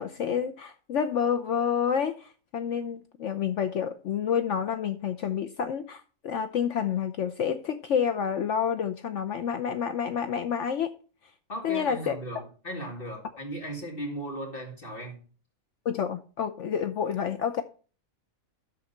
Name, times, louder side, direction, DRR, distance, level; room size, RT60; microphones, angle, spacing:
voice 1, 0.0-10.9 11.6-12.4 15.8-17.6, left 7 dB, 65° left, 1.0 m, -29 dB
voice 2, 11.5-15.2, right 1 dB, 40° left, 2.9 m, -37 dB
12.5 x 4.1 x 5.6 m
omnidirectional pair, 1.5 m